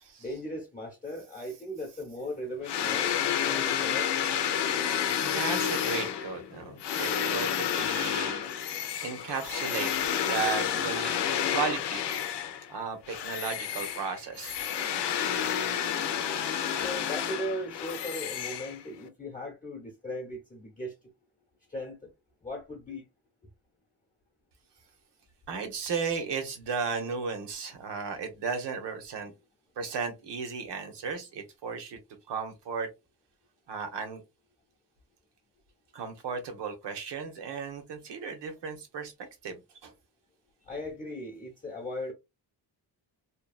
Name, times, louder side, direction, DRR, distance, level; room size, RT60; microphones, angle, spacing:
voice 1, 0.2-3.1 3.5-4.1 16.7-20.9 21.7-22.0 22.4-23.0 40.7-42.1, left 1 dB, 20° left, 0.7 m, -38 dB
sound 1, 2.7-12.7 13.1-19.1, left 9 dB, 75° left, 0.6 m, -30 dB
voice 2, 4.9-8.5 9.0-9.9 10.2-11.1 11.4-12.1 12.7-14.6 25.5-29.3 29.8-32.0 32.3-32.9 33.7-34.2 35.9-39.1 39.4-39.9, right 5 dB, 80° right, 0.9 m, -35 dB
2.8 x 2.3 x 2.3 m
cardioid pair, 120°, 41 cm